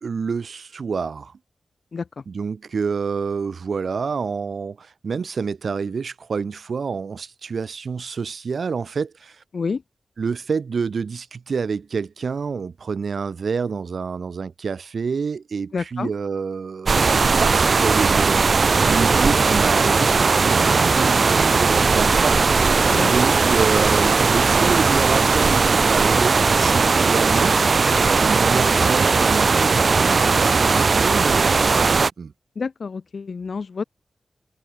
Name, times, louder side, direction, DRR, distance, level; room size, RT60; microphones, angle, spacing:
voice 1, 0.0-1.3 2.3-9.4 10.2-17.0 17.4-18.5 18.8-22.7 23.0-27.5 28.0-32.3, right 5 dB, 75° right, 1.0 m, -27 dB
voice 2, 15.7-16.1 22.9-23.1 32.6-33.8, left 5 dB, 65° left, 2.1 m, -28 dB
sound 1, 16.9-32.1, right 4 dB, 55° right, 1.7 m, -18 dB
wide cardioid pair, 110°, 0 cm